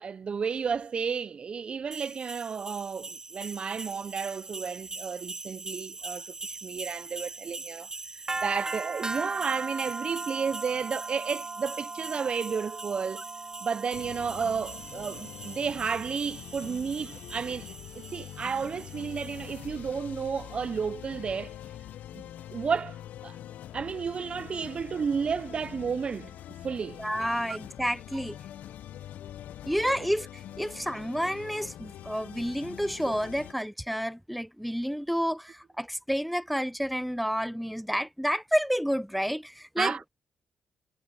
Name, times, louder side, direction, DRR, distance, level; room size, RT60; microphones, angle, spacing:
voice 1, 0.0-13.2 13.6-21.6 22.1-23.0 23.2-23.4 23.7-26.4 26.6-27.0 39.8-40.1, right 6 dB, 40° right, 0.3 m, -32 dB
sound 1, 1.9-19.6, right 3 dB, 25° right, 1.2 m, -39 dB
sound 2, 13.9-33.5, left 12 dB, 80° left, 0.5 m, -44 dB
voice 2, 27.0-28.4 29.6-39.9, equal, ahead, 0.6 m, -30 dB
cardioid pair, 95°, 3 cm